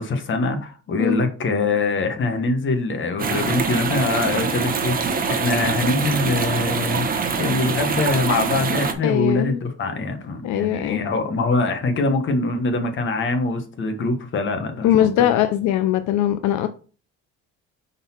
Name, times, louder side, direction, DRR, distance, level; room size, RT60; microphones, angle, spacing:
voice 1, 0.0-7.1 7.4-15.1, left 3 dB, 40° left, 1.3 m, -23 dB
sound 1, 3.2-8.9, right 5 dB, 30° right, 0.9 m, -24 dB
voice 2, 9.0-9.6 10.4-11.0 14.8-16.7, left 11 dB, 75° left, 0.5 m, -20 dB
5.4 x 4.0 x 4.3 m
cardioid pair, 120°, 30 cm